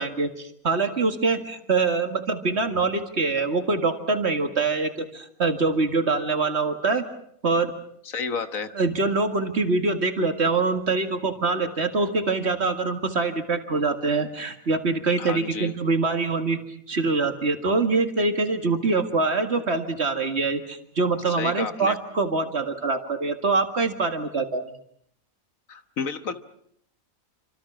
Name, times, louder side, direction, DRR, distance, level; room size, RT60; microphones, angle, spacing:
voice 1, 0.0-7.0 7.4-7.7 8.7-16.6 16.9-24.7, right 3 dB, 50° right, 7 dB, 2.2 m, -24 dB
voice 2, 8.1-8.7 15.2-15.7 21.4-21.9 25.7-26.3, left 5 dB, 80° left, 10 dB, 1.7 m, -31 dB
28.0 x 26.0 x 6.2 m, 0.68 s
omnidirectional pair, 1.4 m